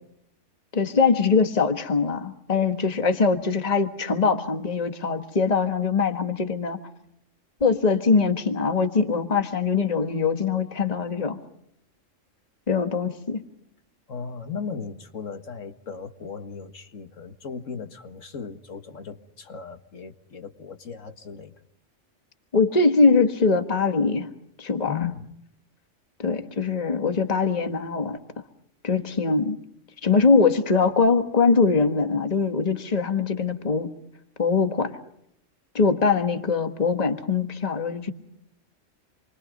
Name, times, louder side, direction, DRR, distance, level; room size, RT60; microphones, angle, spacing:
voice 1, 0.7-6.8 7.6-11.4 12.7-13.4 22.5-24.3 24.6-25.0 26.2-28.2 28.8-29.6 30.0-33.9 34.4-34.9 35.7-38.1, left 4 dB, 35° left, 7 dB, 1.6 m, -22 dB
voice 2, 14.1-21.5 24.9-25.3, left 6 dB, 85° left, 8 dB, 2.1 m, -36 dB
28.0 x 24.0 x 5.4 m, 0.76 s
omnidirectional pair, 1.3 m